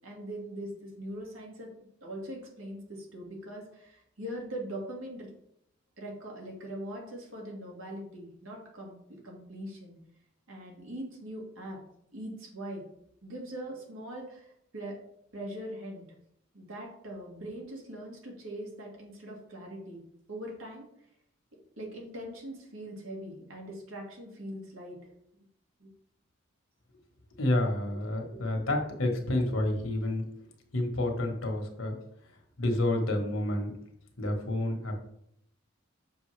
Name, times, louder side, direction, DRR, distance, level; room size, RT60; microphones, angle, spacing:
voice 1, 0.0-1.7 2.0-5.3 6.0-10.0 10.5-11.8 12.1-12.8 13.2-15.0 15.3-16.0 16.5-20.0 20.3-20.9 21.8-25.0 25.8-25.9 28.3-28.4, right 1 dB, 90° right, -1 dB, 2.0 m, -41 dB
voice 2, 27.4-30.2 30.7-32.0 32.6-33.7 34.2-35.0, left 1 dB, 75° left, 3 dB, 1.4 m, -29 dB
6.9 x 5.4 x 3.3 m, 0.73 s
head